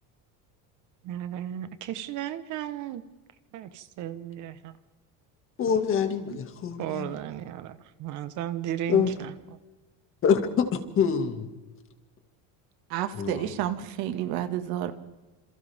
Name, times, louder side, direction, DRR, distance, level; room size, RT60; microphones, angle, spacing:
voice 1, 1.0-3.0 3.5-4.7 6.8-9.3, right 11 dB, 50° right, 11 dB, 1.3 m, -35 dB
voice 2, 5.6-7.1 8.9-9.1 10.2-11.5 13.2-13.5, left 7 dB, 35° left, 6 dB, 2.2 m, -25 dB
voice 3, 12.9-14.9, right 12 dB, 70° right, 8 dB, 2.0 m, -30 dB
27.5 x 27.5 x 3.6 m, 1.2 s
cardioid pair, 165°, 38 cm